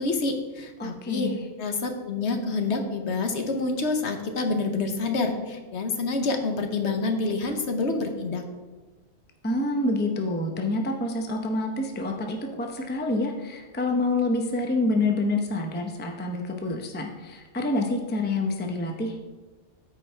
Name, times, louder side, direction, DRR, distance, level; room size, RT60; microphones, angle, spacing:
voice 1, 0.0-1.3 1.6-8.5, left 3 dB, 60° left, 4 dB, 1.1 m, -27 dB
voice 2, 0.8-1.4 9.4-19.2, left 2 dB, 10° left, 3 dB, 0.5 m, -27 dB
13.0 x 4.6 x 3.4 m, 1.3 s
omnidirectional pair, 1.3 m